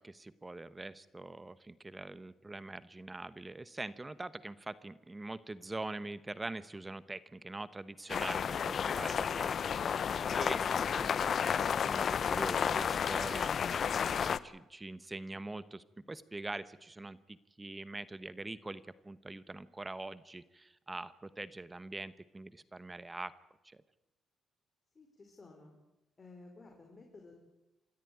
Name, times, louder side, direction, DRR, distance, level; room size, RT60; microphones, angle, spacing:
voice 1, 0.0-11.1 11.8-23.3 23.6-23.8, right 2 dB, 20° right, 16 dB, 1.0 m, -44 dB
sound 1, 8.1-14.4, left 7 dB, 55° left, 0.7 m, -32 dB
voice 2, 24.9-25.7 26.2-27.4, left 3 dB, 35° left, 2 dB, 4.5 m, -54 dB
27.5 x 13.5 x 9.3 m, 0.95 s
cardioid pair, 90°, 0 cm